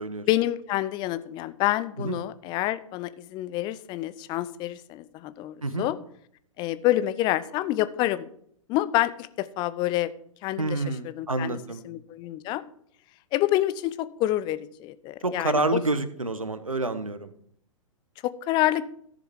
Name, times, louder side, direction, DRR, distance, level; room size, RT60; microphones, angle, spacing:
voice 1, 0.3-6.0 6.6-8.3 8.7-10.1 10.4-10.8 11.0-11.6 11.8-12.6 13.3-15.8 18.2-18.8, left 15 dB, 25° left, 15 dB, 0.5 m, -27 dB
voice 2, 10.6-11.8 15.2-17.3, right 2 dB, 85° right, 12 dB, 1.0 m, -28 dB
14.0 x 6.9 x 4.6 m, 0.67 s
figure-of-eight pair, 105°, 17 cm